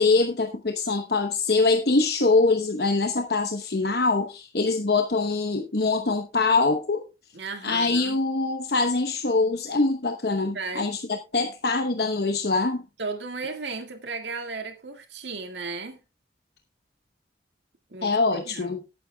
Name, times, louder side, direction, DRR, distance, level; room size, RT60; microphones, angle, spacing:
voice 1, 0.0-7.0 7.6-12.8 18.0-18.8, left 3 dB, 65° left, 1.0 m, -23 dB
voice 2, 7.3-8.2 10.5-10.9 13.0-16.0 17.9-18.8, right 4 dB, 85° right, 1.9 m, -35 dB
17.5 x 8.9 x 2.3 m
head